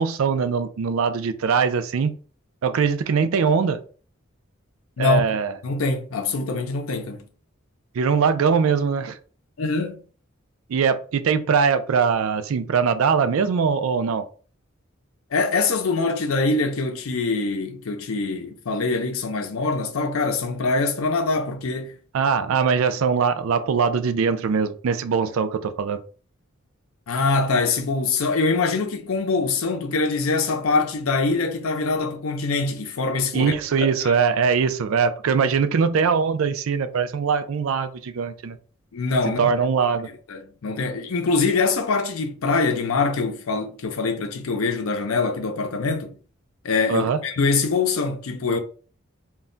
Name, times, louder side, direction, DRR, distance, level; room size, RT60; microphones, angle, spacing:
voice 1, 0.0-2.1 2.6-3.8 5.0-5.5 7.9-9.2 10.7-14.2 22.1-26.0 33.3-38.6 39.4-40.1 46.9-47.2, right 6 dB, 75° right, 0.4 m, -21 dB
voice 2, 5.6-7.3 9.6-10.0 15.3-22.0 27.1-33.5 34.0-34.2 38.9-39.5 40.3-46.1 46.6-48.6, left 3 dB, 85° left, 0.5 m, -24 dB
2.2 x 2.1 x 3.7 m
head